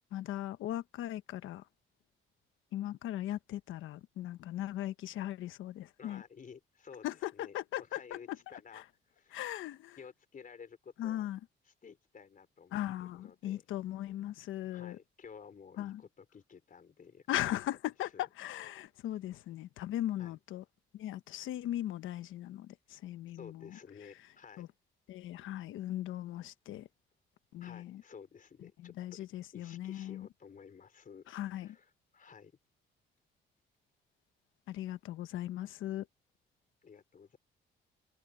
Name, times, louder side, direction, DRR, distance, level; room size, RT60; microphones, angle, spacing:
voice 1, 0.1-1.7 2.7-6.2 7.0-8.4 8.7-8.8 9.3-10.0 11.0-11.4 12.7-15.0 15.8-16.0 17.3-20.6 20.9-23.8 24.6-24.7 25.1-26.9 27.5-28.0 28.8-30.3 31.3-31.8 34.7-36.1, left 13 dB, 85° left, 1.1 m, -38 dB
voice 2, 6.0-7.1 7.3-8.8 9.1-9.4 10.0-11.3 11.8-13.6 14.7-17.3 18.1-18.3 20.2-20.4 23.3-24.7 27.6-29.0 29.5-32.5 36.8-37.4, left 6 dB, 45° left, 3.8 m, -53 dB
cardioid pair, 90°, 20 cm